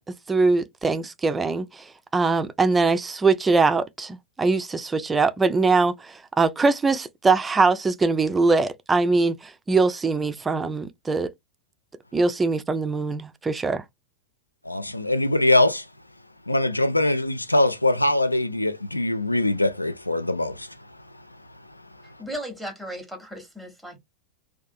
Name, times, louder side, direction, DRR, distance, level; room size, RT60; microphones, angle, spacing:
voice 1, 0.3-1.9 2.1-11.3 12.1-13.8, right 3 dB, 15° right, 0.3 m, -22 dB
voice 2, 14.6-15.9 16.5-20.8, left 2 dB, 85° left, 0.3 m, -22 dB
voice 3, 22.0-24.0, equal, ahead, 0.8 m, -36 dB
2.5 x 2.2 x 2.5 m
figure-of-eight pair, 90°, 0 cm